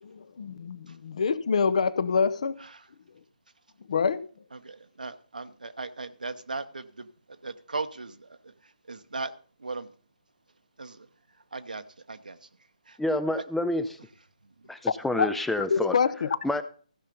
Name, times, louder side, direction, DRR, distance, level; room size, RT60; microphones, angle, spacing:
voice 1, 0.0-2.6 3.9-4.2 15.2-15.3 15.7-16.3, left 5 dB, 55° left, 0.7 m, -26 dB
voice 2, 4.5-7.1 7.4-8.3 8.9-9.3 9.6-9.9 10.8-11.1 11.5-11.8 12.1-12.4 12.9-13.0, right 3 dB, 75° right, 1.0 m, -37 dB
voice 3, 13.0-13.9 14.7-16.0 16.4-16.6, left 1 dB, 5° left, 0.4 m, -28 dB
15.5 x 5.6 x 5.2 m
figure-of-eight pair, 140°, 4 cm